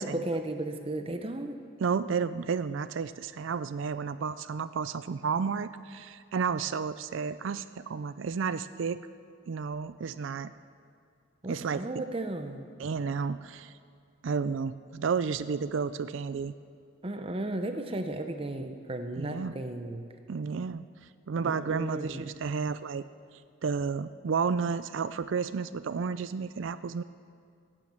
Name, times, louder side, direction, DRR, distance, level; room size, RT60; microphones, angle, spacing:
voice 1, 0.0-1.6 11.4-12.7 17.0-20.1 21.4-22.3, right 1 dB, 25° right, 7 dB, 0.8 m, -35 dB
voice 2, 1.8-9.0 9.5-10.5 11.5-11.8 12.8-13.7 14.2-16.5 19.2-19.6 20.3-20.9 21.3-23.0 23.6-27.0, right 5 dB, 65° right, 14 dB, 0.4 m, -31 dB
17.0 x 9.3 x 7.4 m, 2.3 s
head